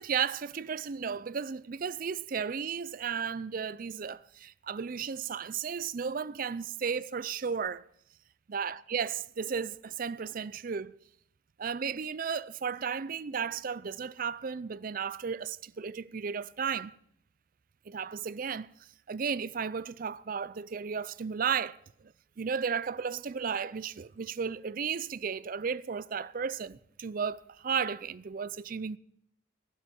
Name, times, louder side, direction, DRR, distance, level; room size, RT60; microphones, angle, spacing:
voice 1, 0.0-7.9 8.5-10.9 11.6-16.9 17.9-18.7 19.1-29.0, right 6 dB, 45° right, 0.4 m, -34 dB
20.5 x 11.5 x 4.4 m
head